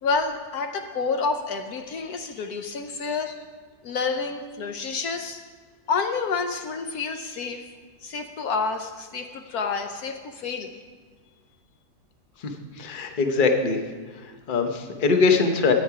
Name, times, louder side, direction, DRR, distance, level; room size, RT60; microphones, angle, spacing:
voice 1, 0.0-3.4 3.8-5.4 5.9-7.7 8.0-10.7, left 4 dB, 70° left, 6 dB, 1.2 m, -29 dB
voice 2, 12.8-13.8 14.2-15.7, left 4 dB, 35° left, 4 dB, 1.0 m, -22 dB
13.0 x 9.5 x 4.8 m, 1.5 s
omnidirectional pair, 1.8 m